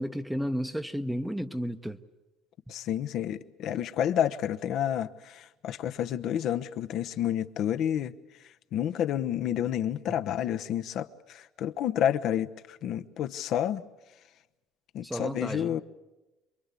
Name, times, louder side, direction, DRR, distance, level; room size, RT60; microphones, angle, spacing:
voice 1, 0.0-2.0 15.0-15.8, equal, ahead, 1.0 m, -32 dB
voice 2, 2.7-8.1 8.7-13.8 14.9-15.8, left 10 dB, 55° left, 1.0 m, -30 dB
27.0 x 23.0 x 8.3 m
cardioid pair, 140°, 0 cm